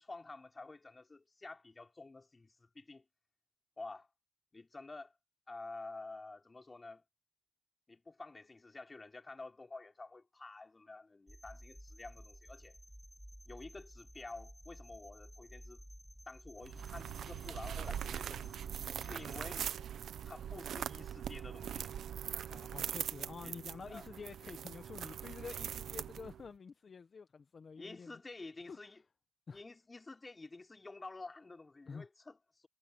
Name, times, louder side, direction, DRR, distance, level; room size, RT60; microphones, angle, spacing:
voice 1, 0.0-3.0 3.8-4.1 4.5-5.1 5.5-7.0 7.9-12.8 13.5-15.8 16.3-18.5 19.0-19.7 20.2-21.9 22.3-22.5 23.4-23.5 23.9-24.0 27.8-29.0 29.5-32.7, left 3 dB, 20° left, 3.4 m, -50 dB
sound 1, 11.3-19.4, equal, ahead, 1.0 m, -54 dB
sound 2, 16.6-26.5, right 9 dB, 65° right, 1.0 m, -42 dB
voice 2, 22.5-28.2 28.7-28.8 29.5-29.6 31.9-32.1, left 5 dB, 40° left, 1.3 m, -49 dB
cardioid pair, 90°, 0 cm